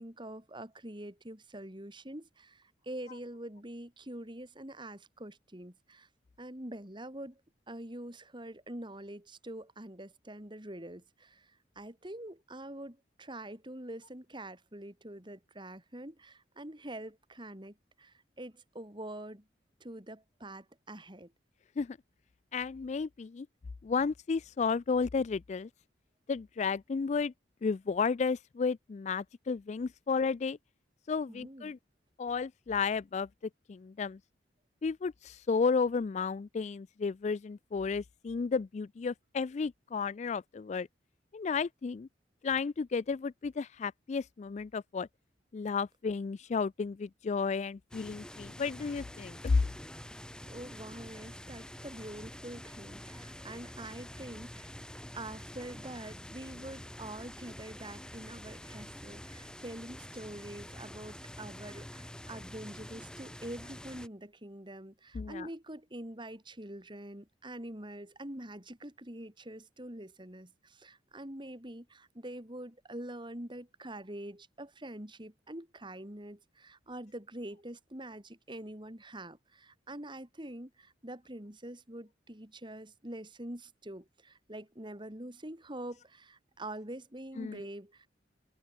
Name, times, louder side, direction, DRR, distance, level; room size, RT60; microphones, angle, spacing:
voice 1, 0.0-6.1 6.4-7.4 7.7-19.5 19.8-21.3 31.3-31.7 50.4-54.7 55.1-88.1, right 1 dB, 25° right, 3.6 m, -45 dB
voice 2, 22.5-23.5 23.8-25.7 26.3-27.3 27.6-30.6 31.1-31.8 32.2-33.3 33.7-34.2 34.8-40.9 41.3-42.1 42.4-45.1 45.5-49.6 65.1-65.5 87.4-87.6, left 5 dB, 40° left, 0.3 m, -32 dB
sound 1, 47.9-64.1, equal, 5° left, 1.6 m, -47 dB
head